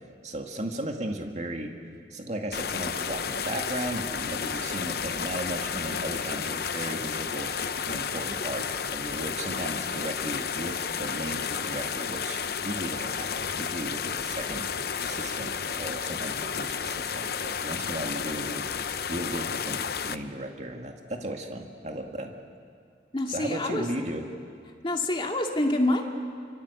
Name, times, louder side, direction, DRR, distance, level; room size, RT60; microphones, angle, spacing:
voice 1, 0.2-1.7 2.1-7.5 7.8-8.7 8.9-14.7 15.0-18.7 19.1-22.3 23.3-24.2, right 1 dB, 40° right, 3 dB, 2.2 m, -35 dB
sound 1, 2.5-20.2, left 6 dB, 60° left, 0.8 m, -32 dB
voice 2, 23.1-23.9 24.8-26.0, left 1 dB, 30° left, 2 dB, 2.3 m, -26 dB
27.0 x 25.0 x 8.4 m, 2.2 s
head